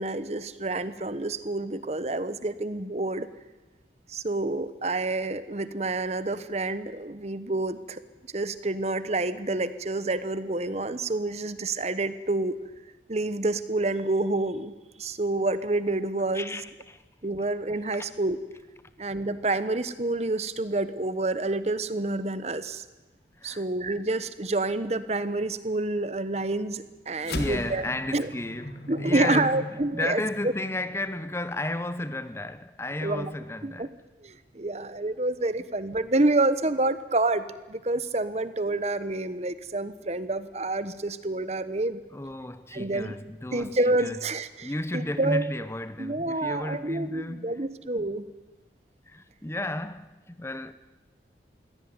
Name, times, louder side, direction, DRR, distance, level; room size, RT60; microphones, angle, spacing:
voice 1, 0.0-3.3 4.1-8.0 8.3-12.6 13.1-16.6 17.2-18.4 19.0-22.8 23.4-27.8 28.1-28.3 28.9-30.5 33.0-33.3 33.6-33.9 34.2-42.0 42.7-43.1 43.5-45.5 46.0-48.3, right 2 dB, 35° right, 1.1 m, -28 dB
voice 2, 16.3-17.0 18.0-18.1 23.4-23.6 27.2-33.9 42.1-44.2 44.6-47.7 49.1-50.7, left 1 dB, 15° left, 0.7 m, -33 dB
sound 1, 27.2-31.8, left 1 dB, 60° left, 2.5 m, -38 dB
22.5 x 16.5 x 9.6 m
head